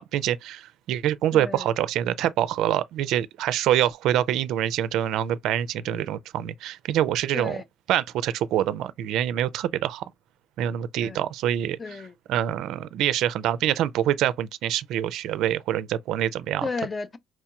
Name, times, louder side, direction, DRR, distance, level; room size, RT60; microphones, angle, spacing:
voice 1, 0.0-7.6 7.9-10.1 10.6-11.8 12.3-16.6, right 11 dB, 70° right, 0.4 m, -25 dB
voice 2, 1.3-1.7 7.3-7.6 11.0-11.2 11.8-12.1 16.6-17.2, left 4 dB, 20° left, 0.5 m, -33 dB
4.4 x 2.9 x 2.3 m
cardioid pair, 125°, 0 cm